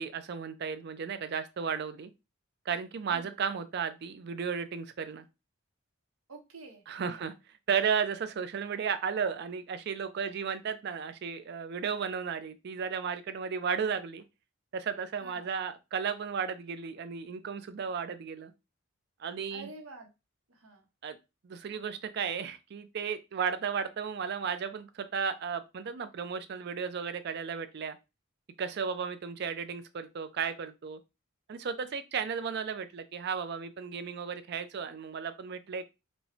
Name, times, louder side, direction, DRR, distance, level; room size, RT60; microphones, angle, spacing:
voice 1, 0.0-2.1 2.7-5.2 6.9-7.3 7.7-14.2 14.7-18.5 19.2-19.7 21.0-21.2 21.4-28.0 28.6-31.0 31.5-35.9, right 6 dB, 50° right, 11 dB, 0.4 m, -34 dB
voice 2, 3.1-3.4 6.3-7.3 15.2-15.5 19.5-20.1 20.5-20.9, right 2 dB, 85° right, 4 dB, 0.9 m, -49 dB
4.5 x 2.0 x 2.7 m, 0.25 s
head